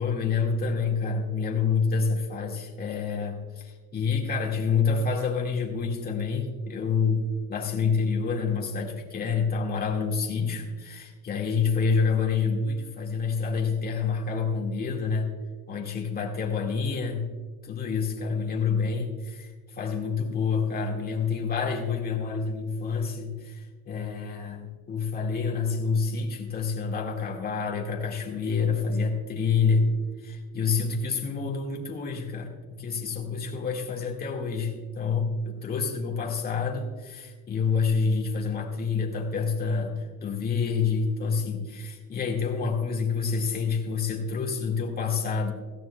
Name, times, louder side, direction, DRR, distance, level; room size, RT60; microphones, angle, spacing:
voice 1, 0.0-15.3 15.7-17.3 17.6-45.5, left 5 dB, 25° left, -1 dB, 1.9 m, -28 dB
17.0 x 14.0 x 2.3 m, 1.4 s
cardioid pair, 130°, 38 cm